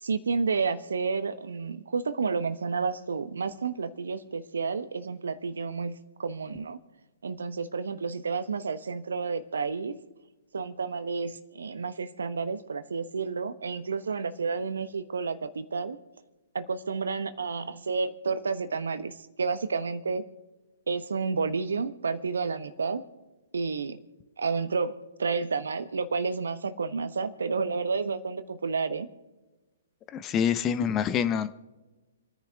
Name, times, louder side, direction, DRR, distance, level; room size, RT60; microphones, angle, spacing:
voice 1, 0.0-6.8 7.2-9.9 10.5-16.0 16.5-20.2 20.9-23.0 23.5-24.0 24.4-29.1, right 4 dB, 75° right, 12 dB, 1.2 m, -30 dB
voice 2, 30.1-31.5, left 8 dB, 25° left, 13 dB, 0.8 m, -26 dB
29.5 x 10.0 x 3.6 m, 1.2 s
hypercardioid pair, 130°, 0 cm